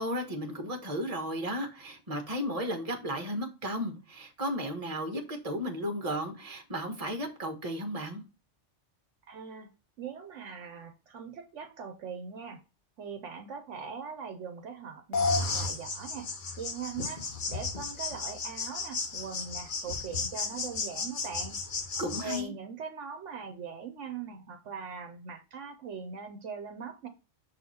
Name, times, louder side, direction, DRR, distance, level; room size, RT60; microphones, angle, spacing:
voice 1, 0.0-8.2 22.0-22.5, equal, 30° right, 1.4 m, -34 dB
voice 2, 9.3-9.7 10.0-12.6 13.0-16.3 16.6-21.6 22.2-27.1, right 6 dB, 70° right, 1.1 m, -41 dB
sound 1, 15.1-22.4, left 4 dB, 45° left, 0.9 m, -34 dB
6.5 x 4.1 x 4.2 m
omnidirectional pair, 1.3 m